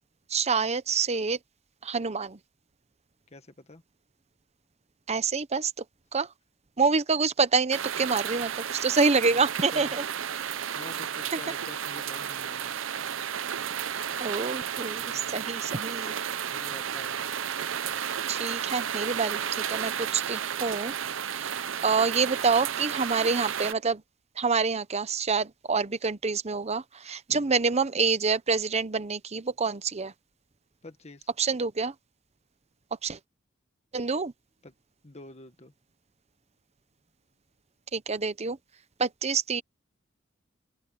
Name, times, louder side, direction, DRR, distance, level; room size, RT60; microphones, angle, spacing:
voice 1, 0.3-1.4 1.8-2.4 5.1-5.7 6.1-6.3 6.8-10.0 11.3-11.4 14.2-16.2 18.3-20.9 21.3-24.0 24.4-30.1 31.4-31.9 33.0-33.2 33.9-34.3 37.9-38.6 39.0-39.6, right 4 dB, 35° right, 0.9 m, -27 dB
voice 2, 3.3-3.8 9.3-9.9 10.7-12.7 15.0-15.4 16.5-17.3 27.3-27.5 30.8-31.3 34.6-34.7 35.0-35.7, left 2 dB, 35° left, 1.6 m, -47 dB
sound 1, 7.7-23.7, right 8 dB, 70° right, 0.7 m, -33 dB
open air
head